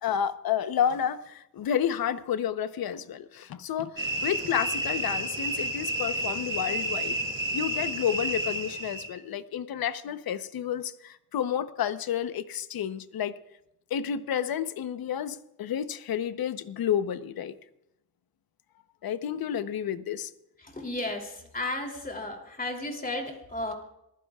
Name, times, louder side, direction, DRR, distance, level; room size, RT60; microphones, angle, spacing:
voice 1, 0.0-7.2 7.5-13.3 13.9-17.5 19.0-20.3, left 9 dB, 70° left, 12 dB, 0.9 m, -30 dB
sound 1, 4.0-9.1, right 1 dB, 35° right, 4.8 m, -31 dB
voice 2, 20.6-23.7, left 2 dB, 25° left, 2 dB, 3.0 m, -34 dB
26.5 x 15.0 x 2.4 m, 0.86 s
cardioid pair, 120°, 37 cm